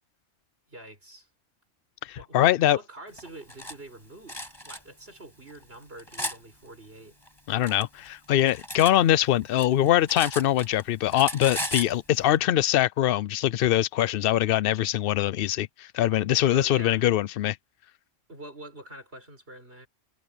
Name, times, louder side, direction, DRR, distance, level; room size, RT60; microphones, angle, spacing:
voice 1, 0.7-1.3 2.2-7.2 16.4-17.1 18.3-19.9, right 1 dB, 55° right, 6.1 m, -45 dB
voice 2, 2.0-2.8 7.5-17.6, left 12 dB, 60° left, 0.6 m, -23 dB
Cutlery silverware, 3.2-3.8 4.3-4.8 5.5-6.4 7.3-9.0 9.3-10.8 11.1-11.9, equal, 20° left, 7.0 m, -36 dB
omnidirectional pair, 1.3 m